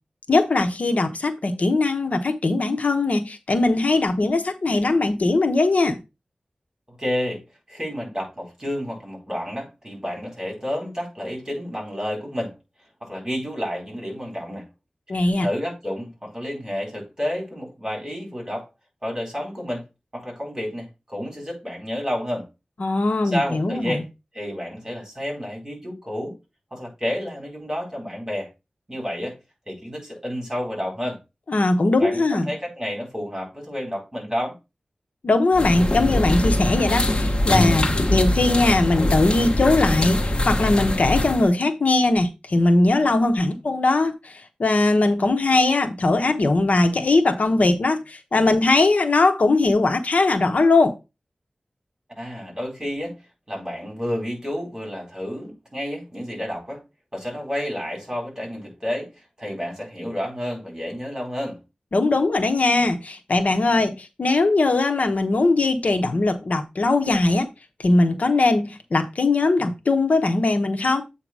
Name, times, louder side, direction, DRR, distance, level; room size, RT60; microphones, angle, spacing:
voice 1, 0.3-6.0 15.1-15.5 22.8-24.0 31.5-32.5 35.2-51.0 61.9-67.5 67.8-71.0, left 2 dB, 70° left, 0.9 m, -20 dB
voice 2, 7.0-7.4 7.7-12.5 13.0-14.7 15.4-18.7 19.0-19.8 20.1-22.5 23.2-24.0 24.3-26.3 26.7-28.5 28.9-29.4 29.7-31.2 32.0-34.6 52.2-53.2 53.5-56.8 57.1-61.6, equal, 20° right, 4.4 m, -30 dB
sound 1, 35.5-41.5, left 1 dB, 40° left, 1.2 m, -22 dB
8.0 x 2.9 x 6.0 m
wide cardioid pair, 85°, 3 cm